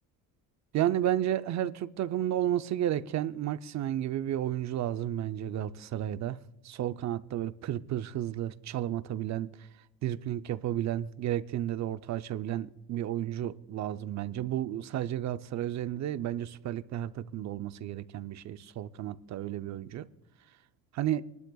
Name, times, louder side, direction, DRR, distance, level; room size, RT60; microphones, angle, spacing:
voice 1, 0.7-6.4 6.6-9.5 10.0-20.1 20.9-21.2, right 12 dB, 50° right, 0.6 m, -32 dB
27.0 x 12.0 x 2.3 m
cardioid pair, 115°, 36 cm